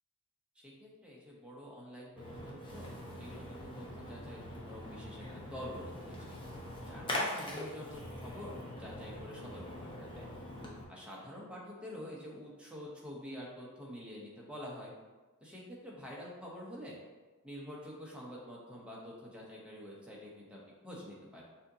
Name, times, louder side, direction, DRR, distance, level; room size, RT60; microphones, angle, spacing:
voice 1, 0.6-6.4 6.9-10.3 10.9-14.9 15.4-17.0 17.4-21.4, equal, 5° right, -4 dB, 0.9 m, -47 dB
Splash splatter, 2.2-10.8, left 1 dB, 25° left, 0.8 m, -42 dB
6.4 x 2.8 x 2.7 m, 1.3 s
head